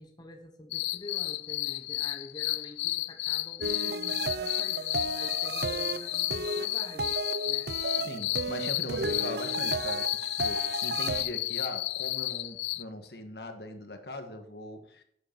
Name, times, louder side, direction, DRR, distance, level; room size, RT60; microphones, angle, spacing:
voice 1, 0.0-8.0, left 2 dB, 25° left, 4 dB, 0.9 m, -47 dB
sound 1, 0.7-12.8, left 18 dB, 90° left, 0.3 m, -32 dB
sound 2, 3.6-11.2, right 3 dB, 65° right, 0.6 m, -34 dB
voice 2, 8.0-15.0, left 1 dB, 65° left, 6 dB, 1.5 m, -40 dB
11.0 x 8.0 x 4.5 m, 0.68 s
head